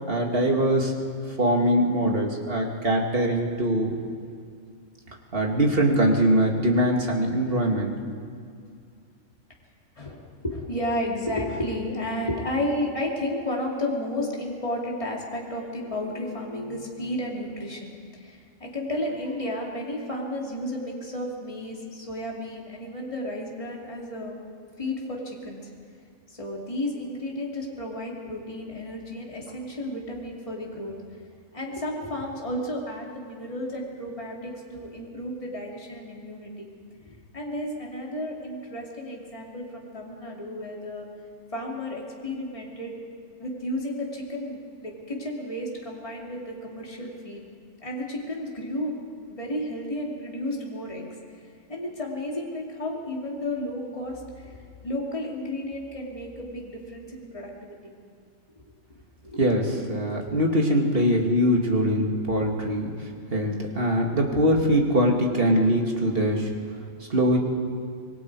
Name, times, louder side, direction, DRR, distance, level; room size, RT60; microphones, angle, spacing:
voice 1, 0.1-0.9 1.4-3.9 5.3-8.0 59.4-66.5 67.1-67.4, equal, 40° right, 1 dB, 2.5 m, -22 dB
voice 2, 10.0-24.4 24.8-25.7 26.3-31.0 31.5-36.7 37.0-41.1 41.5-43.0 43.4-47.4 47.8-49.0 49.3-51.4 51.7-57.9 59.2-59.4, left 1 dB, 25° left, -2 dB, 2.9 m, -32 dB
26.0 x 21.5 x 4.8 m, 2.3 s
omnidirectional pair, 1.5 m